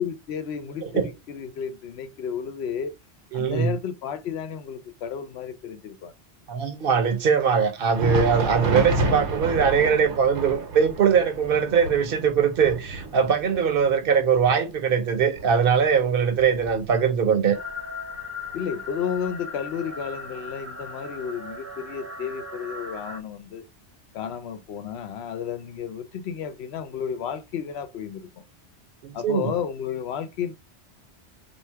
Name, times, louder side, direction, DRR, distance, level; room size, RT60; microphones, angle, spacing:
voice 1, 0.0-2.9 3.3-6.1 8.5-8.8 18.5-23.6 24.1-28.3 29.1-30.5, left 7 dB, 70° left, 0.8 m, -32 dB
voice 2, 3.3-3.7 6.5-17.6 29.0-29.5, right 6 dB, 55° right, 0.9 m, -21 dB
Thunder, 7.8-17.2 17.6-17.7 18.4-18.6 19.6-19.7, right 2 dB, 75° right, 1.2 m, -31 dB
sound 1, 17.5-23.2, left 3 dB, 20° right, 0.4 m, -38 dB
3.3 x 2.7 x 4.5 m
omnidirectional pair, 1.2 m